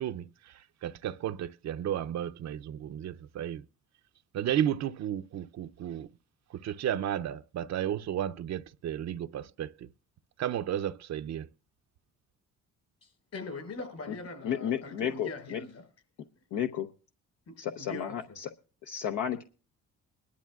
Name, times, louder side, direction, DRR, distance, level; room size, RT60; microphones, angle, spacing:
voice 1, 0.0-3.6 4.3-6.1 6.5-9.9 10.4-11.5, right 10 dB, 60° right, 0.6 m, -33 dB
voice 2, 13.0-15.8 17.5-18.4, left 3 dB, 60° left, 5.1 m, -42 dB
voice 3, 14.4-15.6 16.5-16.9 17.6-18.5 18.8-19.4, left 9 dB, 80° left, 0.8 m, -32 dB
21.5 x 11.5 x 2.4 m
cardioid pair, 90°, 30 cm